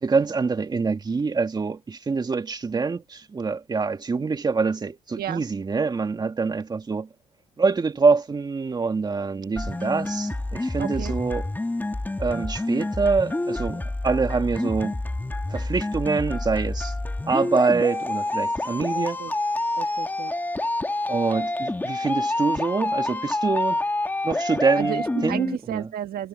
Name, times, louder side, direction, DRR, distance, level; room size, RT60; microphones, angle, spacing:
voice 1, 0.0-7.1 7.6-11.5 12.2-15.0 15.5-16.9 17.3-19.2 21.1-23.8 24.2-25.9, right 4 dB, 25° right, 2.2 m, -25 dB
sound 1, 9.6-25.6, left 2 dB, 10° left, 2.3 m, -28 dB
voice 2, 10.8-11.1 18.9-19.3 19.8-20.3 24.8-26.3, right 11 dB, 65° right, 1.6 m, -32 dB
cardioid pair, 110°, 17 cm